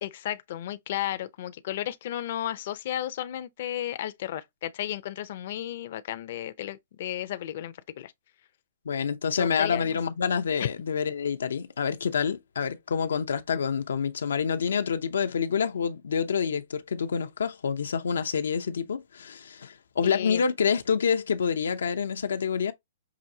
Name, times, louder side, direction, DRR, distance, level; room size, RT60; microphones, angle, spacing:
voice 1, 0.0-8.1 9.4-10.0 10.6-10.7 20.0-20.4, left 12 dB, 50° left, 0.5 m, -33 dB
voice 2, 8.9-22.7, left 6 dB, 90° left, 0.6 m, -27 dB
6.0 x 2.6 x 2.7 m
hypercardioid pair, 160°, 0 cm